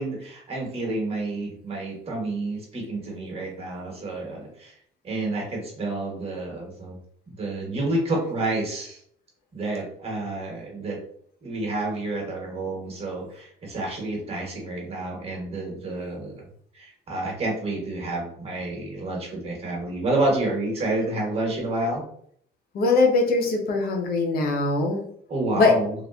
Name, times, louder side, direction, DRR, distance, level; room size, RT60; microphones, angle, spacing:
voice 1, 0.0-4.7 5.0-7.0 7.3-9.0 9.5-11.0 11.4-16.4 16.7-22.0 25.3-25.9, right 2 dB, 35° right, -1 dB, 1.3 m, -29 dB
voice 2, 22.7-25.0 25.6-25.7, left 3 dB, 65° left, 1 dB, 0.8 m, -21 dB
3.2 x 2.5 x 2.4 m, 0.64 s
cardioid pair, 110°, 17 cm